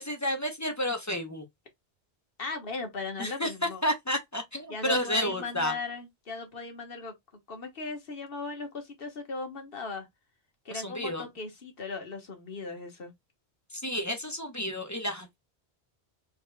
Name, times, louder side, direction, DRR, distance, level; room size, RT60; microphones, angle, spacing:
voice 1, 0.0-1.5 3.2-5.7 10.7-11.3 13.7-15.4, equal, 20° left, 0.7 m, -31 dB
voice 2, 2.4-3.8 4.7-7.1 7.5-10.1 10.6-13.1, left 4 dB, 55° left, 1.5 m, -38 dB
4.0 x 3.7 x 2.2 m
omnidirectional pair, 1.1 m